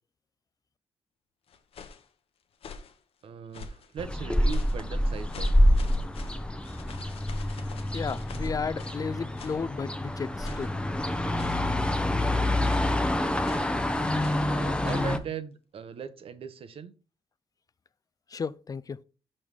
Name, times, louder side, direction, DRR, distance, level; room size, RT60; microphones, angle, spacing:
sound 1, 1.5-2.1 2.5-3.0 3.5-3.9 4.5-4.9 5.3-9.1 9.4-9.6 10.4-10.8 11.3-11.8 12.6-12.9 13.4-13.7 14.2-14.5 14.8-15.1, left 5 dB, 70° left, 0.9 m, -46 dB
voice 1, 3.2-5.5 14.4-16.9, right 6 dB, 65° right, 0.8 m, -39 dB
sound 2, 4.0-15.2, left 1 dB, 10° left, 0.8 m, -27 dB
voice 2, 7.9-10.7 18.3-19.0, left 5 dB, 35° left, 0.4 m, -33 dB
5.5 x 5.2 x 4.8 m
cardioid pair, 80°, 10 cm